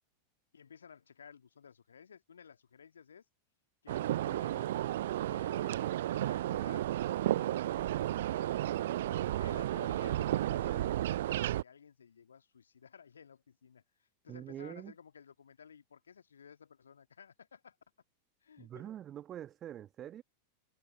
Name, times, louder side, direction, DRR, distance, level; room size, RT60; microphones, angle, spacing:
voice 1, 0.5-3.2 3.8-4.8 5.2-8.7 9.1-17.8 18.4-18.9 20.0-20.1, left 7 dB, 70° left, 1.9 m, -55 dB
sound 1, 3.9-11.6, right 13 dB, 55° right, 0.5 m, -33 dB
voice 2, 14.3-14.9 18.6-20.2, right 11 dB, 30° right, 1.6 m, -45 dB
figure-of-eight pair, 90°, 0 cm